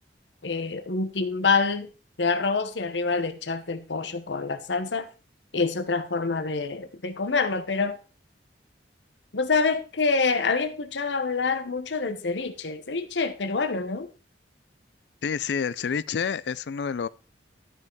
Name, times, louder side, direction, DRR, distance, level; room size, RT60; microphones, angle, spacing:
voice 1, 0.4-1.9 2.2-5.1 5.5-8.0 9.3-14.1, left 4 dB, 85° left, 1.0 m, -26 dB
voice 2, 15.2-17.1, left 6 dB, 70° left, 0.4 m, -28 dB
12.5 x 5.6 x 4.6 m
head